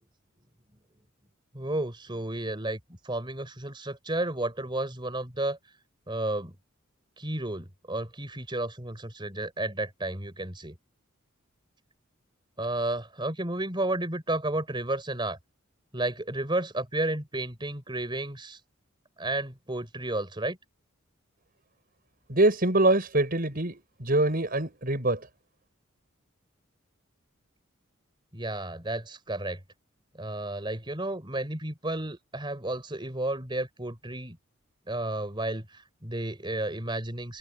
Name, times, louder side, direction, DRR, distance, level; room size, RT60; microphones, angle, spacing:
voice 1, 1.5-2.8 3.0-5.6 6.1-6.5 7.2-10.8 12.6-15.4 15.9-18.6 19.2-20.6 28.3-29.6 30.2-34.4 34.9-37.4, right 1 dB, 20° right, 4.6 m, -32 dB
voice 2, 22.3-25.3, right 2 dB, 45° right, 6.4 m, -24 dB
head